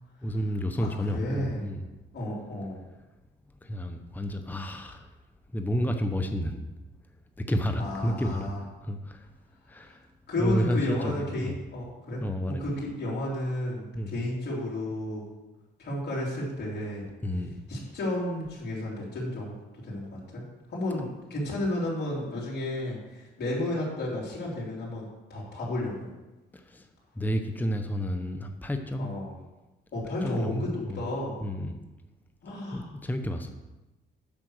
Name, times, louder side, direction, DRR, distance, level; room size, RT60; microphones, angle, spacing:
voice 1, 0.2-1.9 3.6-5.1 5.5-6.6 7.4-8.5 8.8-9.3 9.7-10.1 10.4-11.5 12.2-12.7 13.9-14.2 17.2-17.6 26.5-26.9 27.1-29.1 30.2-31.0 31.4-31.8 32.7-33.5, equal, 10° left, 6 dB, 0.8 m, -31 dB
voice 2, 0.8-1.6 2.1-2.8 7.8-8.6 9.9-10.0 10.3-15.3 15.8-17.1 17.7-19.5 19.8-20.4 20.7-26.1 29.0-29.3 29.9-31.4 32.4-32.9, left 1 dB, 55° left, -5 dB, 3.7 m, -32 dB
8.7 x 5.8 x 6.5 m, 1.1 s
cardioid pair, 90°, 20 cm